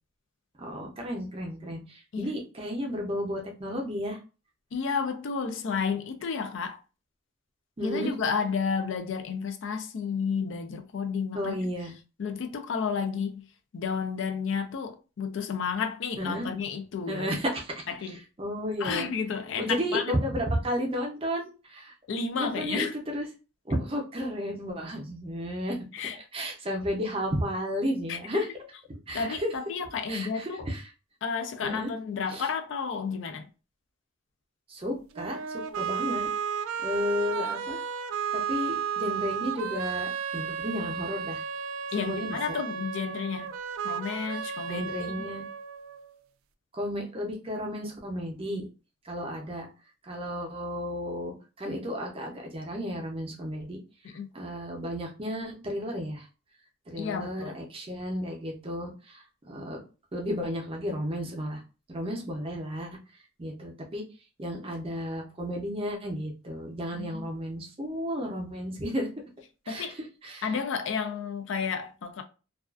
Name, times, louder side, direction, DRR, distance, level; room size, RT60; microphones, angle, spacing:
voice 1, 0.6-4.2 7.8-8.1 11.3-11.9 16.2-16.5 17.1-17.9 18.4-19.1 19.6-21.9 22.4-23.3 23.7-25.8 26.3-28.5 28.9-29.5 30.1-30.8 31.6-31.9 32.3-32.5 34.7-36.3 36.8-37.8 38.3-41.4 42.0-42.6 44.7-45.4 46.7-48.7 49.0-49.7 50.0-53.8 54.3-56.3 56.9-59.8 60.1-61.6 61.9-62.9 63.4-64.0 64.4-69.1 69.7-69.8 70.2-70.5, equal, 25° right, 0.5 m, -33 dB
voice 2, 4.7-6.8 7.8-11.7 12.2-13.5 13.7-17.3 17.9-18.2 18.8-20.1 22.1-22.9 25.9-26.2 28.1-28.5 29.1-30.7 31.2-33.5 41.9-43.5 43.8-44.9 54.0-54.3 57.0-57.6 66.9-67.3 69.7-70.0 70.4-72.2, left 6 dB, 65° left, 0.4 m, -31 dB
sound 1, 35.1-46.1, right 7 dB, 80° right, 0.3 m, -33 dB
2.3 x 2.3 x 2.3 m
head